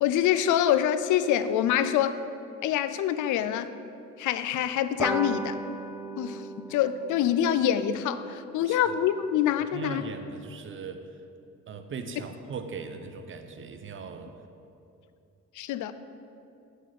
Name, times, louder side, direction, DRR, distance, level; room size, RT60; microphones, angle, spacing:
voice 1, 0.0-2.2 2.6-3.7 4.2-5.6 6.2-10.0 15.5-15.9, left 10 dB, 80° left, 12 dB, 0.5 m, -25 dB
sound 1, 5.0-9.9, right 2 dB, 5° right, 0.3 m, -38 dB
voice 2, 9.7-11.2 11.7-14.3, right 5 dB, 40° right, 7 dB, 0.7 m, -39 dB
7.9 x 4.1 x 6.4 m, 2.7 s
cardioid pair, 90°, 30 cm